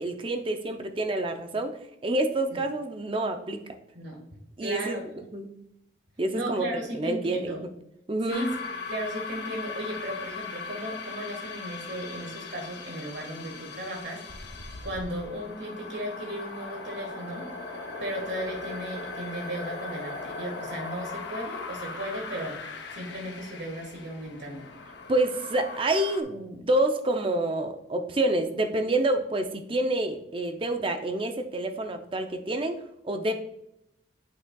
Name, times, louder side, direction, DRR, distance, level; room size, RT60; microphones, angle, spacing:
voice 1, 0.0-3.6 4.6-5.6 6.2-6.7 6.9-7.6 8.1-8.5 25.1-33.3, right 1 dB, 30° right, 6 dB, 0.5 m, -28 dB
voice 2, 4.6-5.2 6.3-7.6 8.3-8.6 8.9-14.2 14.8-17.5 18.0-22.6 22.9-24.7, right 1 dB, 70° right, 0 dB, 1.7 m, -35 dB
sound 1, 8.3-26.2, left 4 dB, 70° left, 0.8 m, -39 dB
8.4 x 5.9 x 2.3 m, 0.82 s
head